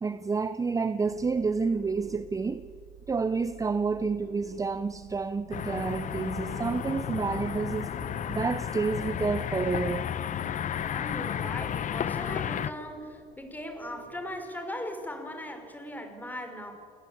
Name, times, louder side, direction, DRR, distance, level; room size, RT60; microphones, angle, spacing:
voice 1, 0.0-2.7 3.1-7.9 8.3-10.1, right 4 dB, 20° right, 0.7 m, -29 dB
sound 1, 1.0-14.4, right 8 dB, 80° right, 1.9 m, -50 dB
sound 2, 5.5-12.7, left 9 dB, 50° left, 0.9 m, -32 dB
voice 2, 10.8-16.7, left 1 dB, 10° left, 4.8 m, -39 dB
28.0 x 19.5 x 8.7 m
cardioid pair, 110°, 17 cm